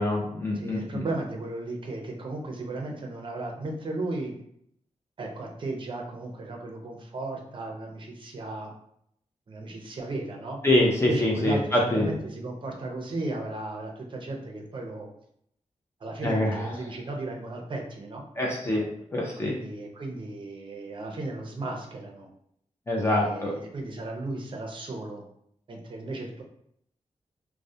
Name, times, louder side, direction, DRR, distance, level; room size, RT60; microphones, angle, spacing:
voice 1, 0.0-1.0 10.6-12.1 16.2-16.6 18.4-18.8 19.1-19.5 22.9-23.5, left 1 dB, 20° left, -2 dB, 0.4 m, -25 dB
voice 2, 0.5-4.3 5.2-8.7 9.5-10.6 11.0-15.1 16.0-18.2 19.4-22.3 23.0-25.2 25.7-26.4, right 2 dB, 40° right, 1 dB, 0.5 m, -35 dB
2.3 x 2.0 x 2.7 m, 0.70 s
wide cardioid pair, 130°, 12 cm